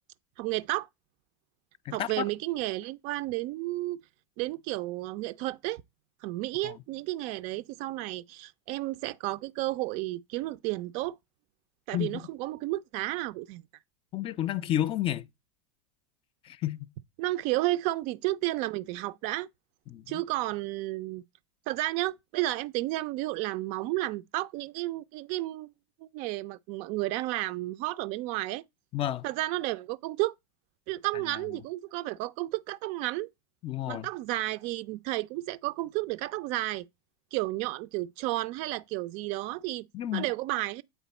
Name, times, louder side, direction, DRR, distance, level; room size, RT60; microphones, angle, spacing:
voice 1, 0.4-0.9 1.9-4.0 4.4-5.8 6.2-11.2 11.9-13.6 17.2-19.5 20.1-21.2 21.7-25.7 26.1-28.6 29.2-30.3 30.9-33.3 33.9-36.9 37.3-39.9 40.1-40.8, right 18 dB, 50° right, 0.4 m, -32 dB
voice 2, 1.9-2.2 6.6-6.7 11.9-12.1 14.1-15.3 16.5-16.9 19.9-20.0 28.9-29.2 33.6-34.1 39.9-40.2, left 12 dB, 35° left, 0.5 m, -30 dB
8.1 x 3.5 x 4.1 m
hypercardioid pair, 95°, 16 cm